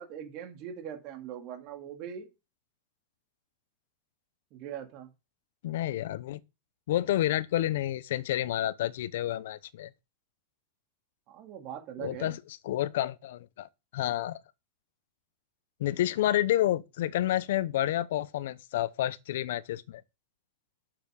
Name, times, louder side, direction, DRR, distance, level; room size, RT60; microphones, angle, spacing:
voice 1, 0.0-2.3 4.5-5.1 11.3-12.3, right 9 dB, 45° right, 2.6 m, -41 dB
voice 2, 5.6-6.4 6.9-9.9 12.0-12.4 12.6-14.4 15.8-20.0, left 13 dB, 75° left, 0.7 m, -29 dB
8.3 x 7.0 x 5.2 m
supercardioid pair, 135°, 0 cm